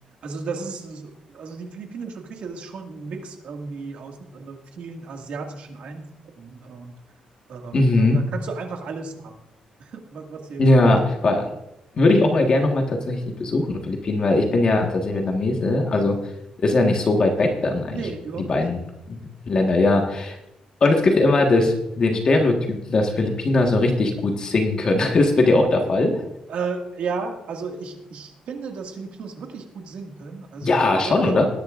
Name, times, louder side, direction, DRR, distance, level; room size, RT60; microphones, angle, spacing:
voice 1, 0.2-6.1 6.4-6.9 7.5-9.3 9.9-10.7 17.9-18.6 26.5-31.4, right 4 dB, 60° right, 3 dB, 2.0 m, -34 dB
voice 2, 7.7-8.2 10.6-11.4 11.9-16.2 16.6-18.0 18.4-18.8 19.1-19.2 19.5-20.4 20.8-26.2 30.6-31.5, left 2 dB, 35° left, 2 dB, 1.5 m, -20 dB
20.0 x 10.5 x 2.5 m, 0.85 s
cardioid pair, 165°, 2 cm